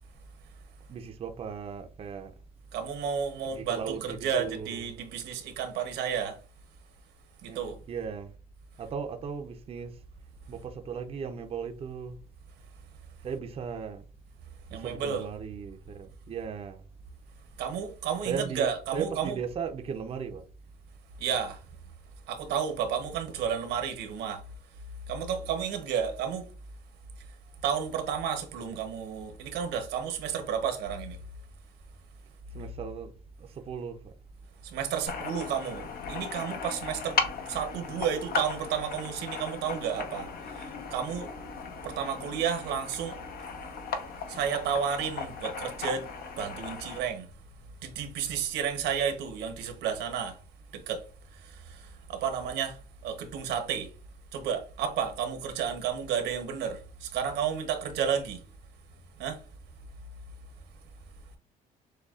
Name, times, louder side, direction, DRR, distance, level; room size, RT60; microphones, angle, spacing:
voice 1, 0.9-2.3 3.5-4.7 7.5-8.3 8.8-9.9 10.5-12.2 13.2-14.0 14.8-16.8 18.3-20.4 32.5-33.1 33.4-34.1, right 6 dB, 35° right, 0.5 m, -37 dB
voice 2, 2.7-6.4 7.4-7.8 14.7-15.3 17.6-19.4 21.2-21.6 22.3-24.4 25.1-26.4 27.6-31.2 34.7-37.2 37.5-40.3 40.5-41.3 41.8-43.2 44.3-46.0 46.4-47.3 47.8-50.4 50.7-51.0 51.7-51.8 52.1-52.8 53.0-53.9 54.3-58.4 59.2-59.4, right 7 dB, 85° right, 0.9 m, -31 dB
sound 1, 35.1-47.0, left 5 dB, 60° left, 0.8 m, -37 dB
6.5 x 2.3 x 2.4 m
cardioid pair, 110°, 17 cm